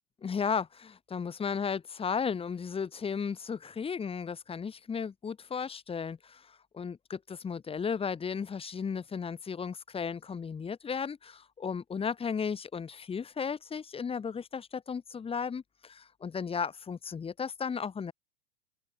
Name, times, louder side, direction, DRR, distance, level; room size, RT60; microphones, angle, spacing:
voice 1, 0.2-18.1, left 6 dB, 15° left, 8.0 m, -35 dB
figure-of-eight pair, 105°, 40 cm